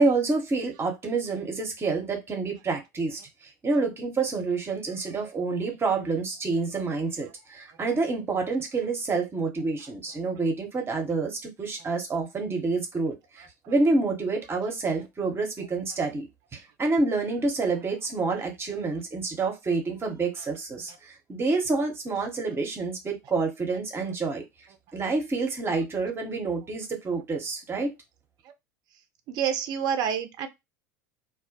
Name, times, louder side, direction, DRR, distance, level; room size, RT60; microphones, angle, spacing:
voice 1, 0.0-16.3 16.5-24.4 24.9-27.9, right 3 dB, 25° right, 0.8 m, -28 dB
voice 2, 29.3-30.5, right 8 dB, 45° right, 0.4 m, -28 dB
2.2 x 2.1 x 2.6 m
hypercardioid pair, 75°, 9 cm